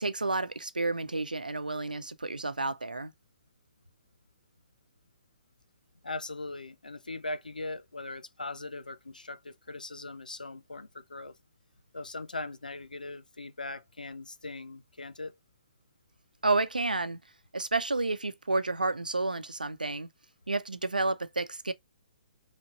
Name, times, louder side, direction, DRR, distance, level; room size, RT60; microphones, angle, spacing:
voice 1, 0.0-3.1 16.4-17.2 17.5-20.1 20.5-21.7, right 3 dB, 80° right, 0.8 m, -30 dB
voice 2, 6.0-11.4 11.9-15.4, left 2 dB, 75° left, 0.6 m, -40 dB
5.3 x 3.4 x 2.4 m
figure-of-eight pair, 130°, 5 cm